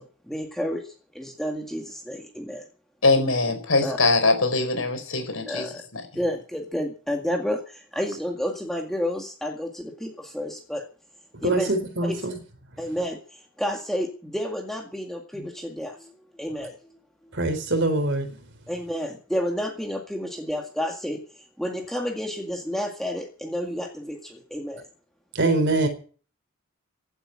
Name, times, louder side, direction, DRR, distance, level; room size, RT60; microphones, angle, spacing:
voice 1, 0.0-2.7 3.8-4.0 5.5-5.8 6.1-10.8 11.4-11.7 12.0-12.2 12.8-16.7 18.7-24.9, equal, ahead, 2.0 m, -30 dB
voice 2, 3.0-5.7 5.9-6.0, left 3 dB, 75° left, 4.7 m, -22 dB
voice 3, 11.4-12.3 17.3-18.3 25.3-25.9, right 2 dB, 55° right, 4.0 m, -23 dB
16.0 x 8.4 x 8.7 m
head